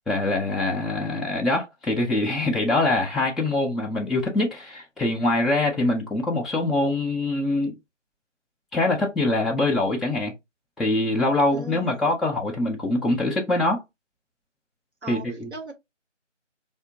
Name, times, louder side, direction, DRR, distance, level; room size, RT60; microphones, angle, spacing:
voice 1, 0.1-7.7 8.7-10.3 10.8-13.8 15.1-15.5, left 2 dB, ahead, 0.4 m, -24 dB
voice 2, 11.5-12.1 15.0-15.7, right 4 dB, 60° right, 1.1 m, -38 dB
4.3 x 2.1 x 2.6 m
figure-of-eight pair, 170°, 37 cm